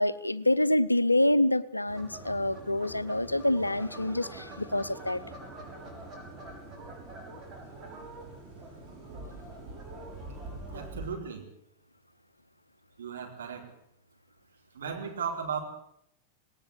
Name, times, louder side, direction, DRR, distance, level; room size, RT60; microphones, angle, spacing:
voice 1, 0.0-5.2, left 1 dB, 85° left, 16 dB, 0.7 m, -26 dB
sound 1, 1.9-11.1, right 2 dB, 25° right, 6.6 m, -44 dB
voice 2, 10.7-11.5 13.0-13.7 14.7-15.6, right 6 dB, 65° right, 2 dB, 4.4 m, -36 dB
19.0 x 18.5 x 8.2 m, 0.72 s
figure-of-eight pair, 90°, 0 cm